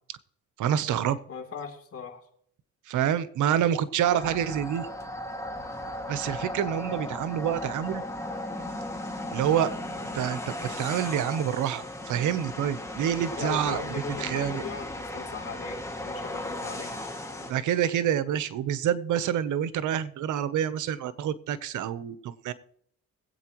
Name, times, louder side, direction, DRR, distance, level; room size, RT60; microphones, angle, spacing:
voice 1, 0.6-1.2 2.9-4.9 6.1-8.0 9.3-9.7 10.1-14.6 17.5-22.5, right 10 dB, 80° right, 14 dB, 0.9 m, -27 dB
voice 2, 1.3-2.2 13.3-15.8 16.0-16.9, left 6 dB, 50° left, 3 dB, 3.3 m, -38 dB
sound 1, 4.0-17.5, left 1 dB, 10° left, 2.1 m, -36 dB
22.0 x 8.5 x 3.1 m, 0.64 s
cardioid pair, 90°, 30 cm